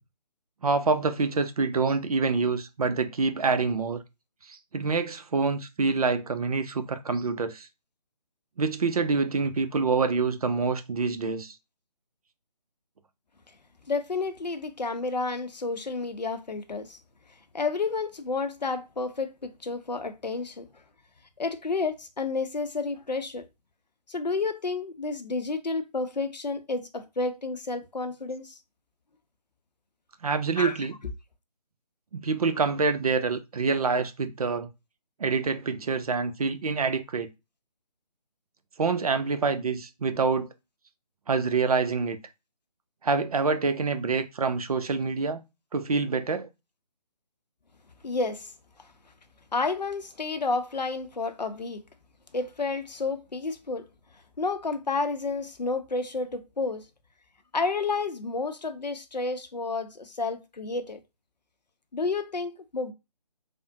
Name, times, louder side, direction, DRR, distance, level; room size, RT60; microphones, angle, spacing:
voice 1, 0.6-4.0 4.5-7.7 8.6-11.5 30.2-30.9 32.1-34.7 35.2-37.3 38.8-40.5 41.3-42.2 43.0-45.4 45.7-46.5, right 4 dB, 60° right, 0.5 m, -26 dB
voice 2, 13.9-17.0 17.5-20.7 21.4-23.4 24.1-28.6 30.6-30.8 48.0-48.5 48.8-48.9 49.5-51.8 52.3-53.9 54.4-56.8 57.5-61.0 61.9-62.9, left 3 dB, 80° left, 0.6 m, -30 dB
3.4 x 2.1 x 2.6 m
figure-of-eight pair, 145°, 21 cm